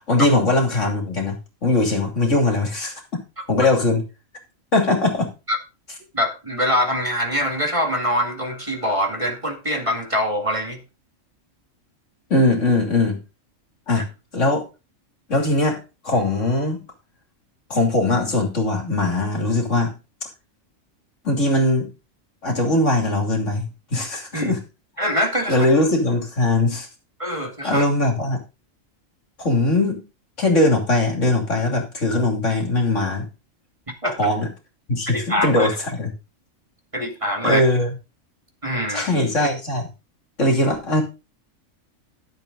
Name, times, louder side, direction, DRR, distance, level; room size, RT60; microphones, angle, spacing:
voice 1, 0.1-1.4 1.6-2.9 3.5-4.0 4.7-5.3 12.3-13.2 13.9-14.1 14.3-14.7 15.3-15.8 16.0-16.8 17.7-19.9 21.2-21.9 22.4-24.6 25.5-26.9 27.6-28.4 29.4-30.0 30.4-33.3 34.2-34.5 34.9-36.1 37.4-37.9 38.9-39.9 40.4-41.0, left 2 dB, 65° left, 3.1 m, -20 dB
voice 2, 6.1-10.8 24.3-24.5 25.0-25.7 27.2-27.8 34.0-34.2 35.1-35.7 36.9-37.6 38.6-39.1, equal, 25° right, 2.1 m, -24 dB
12.5 x 7.6 x 3.9 m
omnidirectional pair, 1.4 m